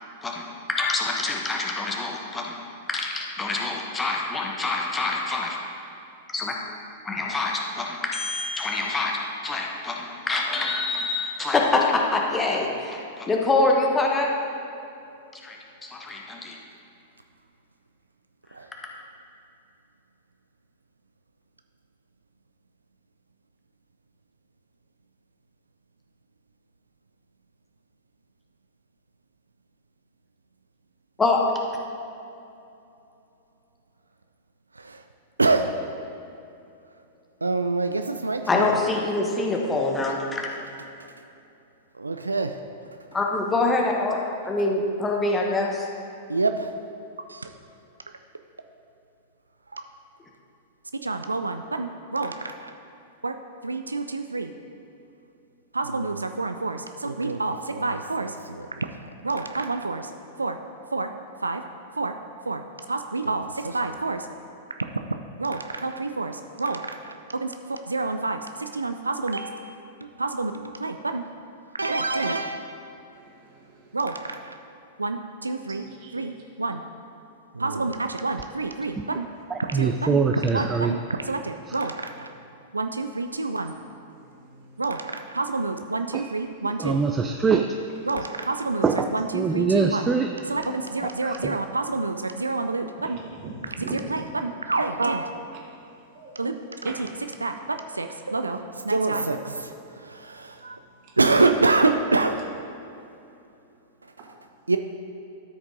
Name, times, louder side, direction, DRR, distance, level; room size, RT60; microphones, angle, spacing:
voice 1, 0.2-2.6 2.9-5.6 6.3-6.5 7.0-9.1 9.4-14.3 15.4-15.6 15.9-16.6 31.2-31.4 38.5-40.5 43.1-45.9, left 3 dB, 15° left, -1 dB, 1.2 m, -25 dB
voice 2, 35.4-35.7 37.4-38.7 42.0-42.6 46.3-46.7 47.3-47.5 49.7-49.8 51.0-52.7 53.2-53.3 53.6-54.5 55.7-60.1 60.4-60.6 60.9-61.1 61.4-61.6 62.0-62.1 62.5-62.6 62.9-64.3 65.4-69.7 70.2-70.5 70.8-71.2 71.8-72.8 73.9-74.6 75.0-75.9 76.1-76.8 77.5-79.2 79.7-80.2 80.5-81.0 81.3-82.3 82.7-83.7 84.8-87.0 88.0-88.9 89.1-90.1 90.5-93.2 93.8-95.3 96.4-96.5 96.8-97.1 97.4-97.5 97.9-100.8 101.2-102.4 104.7-104.8, right 3 dB, 85° right, 7 dB, 0.3 m, -27 dB
voice 3, 73.1-74.0 75.6-76.4 79.3-79.4 83.4-83.5 84.1-84.8 93.0-94.1 96.1-96.5 96.8-96.9 104.2-104.3, right 3 dB, 45° right, -2 dB, 1.9 m, -42 dB
voice 4, 79.5-81.0 81.7-81.8 86.1-86.3 86.6-87.8 88.8-90.3 91.0-91.6, right 5 dB, 15° right, 4 dB, 0.4 m, -24 dB
13.0 x 5.1 x 3.8 m, 2.7 s
figure-of-eight pair, 100°, 0 cm